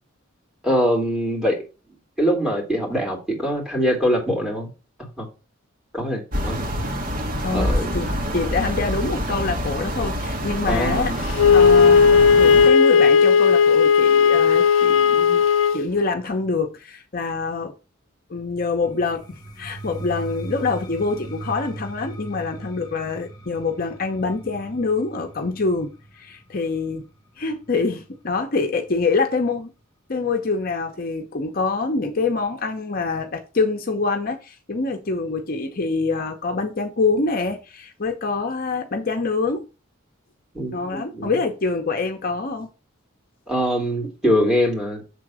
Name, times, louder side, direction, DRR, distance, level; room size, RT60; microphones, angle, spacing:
voice 1, 0.6-1.6 2.2-4.7 5.2-5.3 5.9-6.7 7.5-7.9 10.6-11.2 40.5-41.3 43.5-45.0, equal, 5° right, 2.6 m, -23 dB
sound 1, 6.3-12.7, equal, 45° right, 1.3 m, -26 dB
voice 2, 7.4-11.2 11.5-15.4 15.7-17.7 18.3-27.0 27.4-29.7 30.1-39.7 40.7-42.7, left 4 dB, 45° left, 0.7 m, -25 dB
Wind instrument woodwind instrument, 11.4-15.8, left 6 dB, 65° left, 0.4 m, -15 dB
sound 2, 18.8-28.6, right 2 dB, 20° left, 1.6 m, -39 dB
6.8 x 3.8 x 6.2 m
head